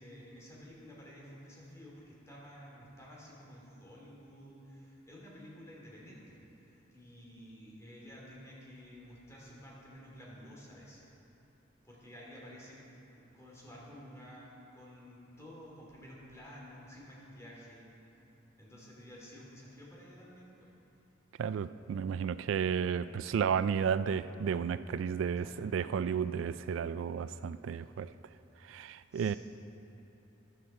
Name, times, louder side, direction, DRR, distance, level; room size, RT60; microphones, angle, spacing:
voice 1, 0.0-11.1 11.8-12.8 13.1-17.9 18.6-20.7 25.4-25.7 29.1-29.4, equal, 15° left, -4 dB, 2.7 m, -52 dB
voice 2, 21.4-28.1 28.6-29.3, right 7 dB, 80° right, 13 dB, 0.3 m, -32 dB
14.0 x 11.0 x 4.3 m, 3.0 s
head